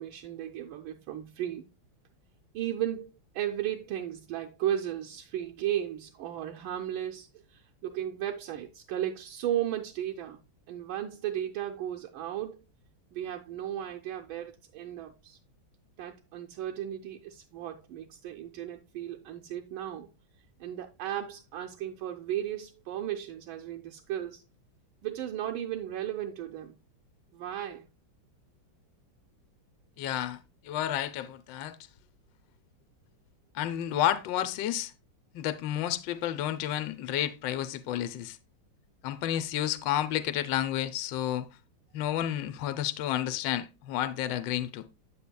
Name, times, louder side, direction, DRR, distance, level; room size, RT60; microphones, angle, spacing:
voice 1, 0.0-1.6 2.5-10.4 10.7-12.6 13.1-15.4 16.0-20.1 20.6-24.4 25.0-26.8 27.3-27.9, right 11 dB, 85° right, 1.5 m, -35 dB
voice 2, 30.0-31.8 33.5-34.9 35.3-38.4 39.0-41.5 41.9-44.9, left 12 dB, 75° left, 1.3 m, -31 dB
8.4 x 8.0 x 2.2 m
omnidirectional pair, 2.1 m